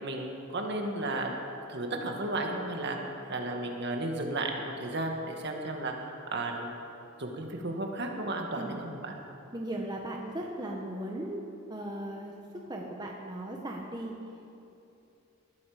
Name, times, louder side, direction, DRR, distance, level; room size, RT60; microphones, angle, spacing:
voice 1, 0.0-1.4 1.7-3.0 3.3-6.7 7.2-9.1, right 2 dB, 55° right, 2 dB, 2.0 m, -34 dB
voice 2, 9.5-11.4 11.7-12.3 12.7-14.1, right 1 dB, 20° right, 0 dB, 1.3 m, -37 dB
20.0 x 13.5 x 5.2 m, 2.8 s
head